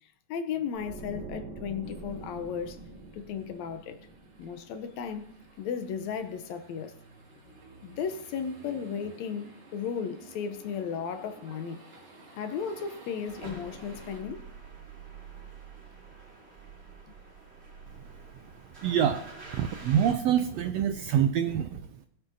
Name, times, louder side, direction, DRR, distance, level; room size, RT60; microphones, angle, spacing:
voice 1, 0.3-2.8 3.1-4.0 4.4-7.0 7.8-11.8 12.4-14.5, left 7 dB, 75° left, 1.9 m, -35 dB
sound 1, 0.7-5.8 6.1-6.4, right 3 dB, 60° right, 2.3 m, -45 dB
sound 2, 1.8-14.2, right 2 dB, 40° right, 2.4 m, -53 dB
sound 3, 13.3-20.1, right 4 dB, 20° right, 3.2 m, -47 dB
voice 2, 18.8-21.8, right 9 dB, 80° right, 1.5 m, -26 dB
19.5 x 8.1 x 2.6 m
omnidirectional pair, 3.4 m